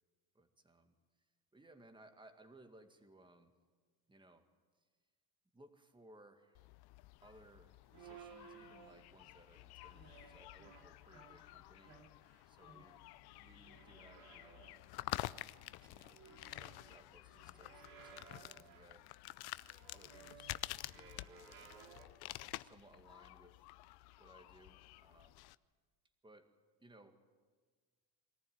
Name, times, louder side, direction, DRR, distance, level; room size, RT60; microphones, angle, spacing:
voice 1, 0.3-3.5 4.1-4.5 4.7-4.9 5.5-6.6 7.2-12.0 12.5-13.0 13.4-14.7 15.8-19.1 19.9-20.6 20.9-21.8 22.6-23.7 24.2-25.4 26.2-26.5 26.8-27.2, right 1 dB, 10° right, 7 dB, 1.9 m, -63 dB
sound 1, 6.5-25.5, left 18 dB, 60° left, 0.6 m, -50 dB
sound 2, 7.9-9.3 9.8-11.5 11.8-13.1 13.4-14.9 15.4-17.0 17.3-19.0 19.5-22.1, right 7 dB, 80° right, 3.0 m, -59 dB
24.0 x 14.5 x 9.5 m, 1.5 s
cardioid pair, 115°, 42 cm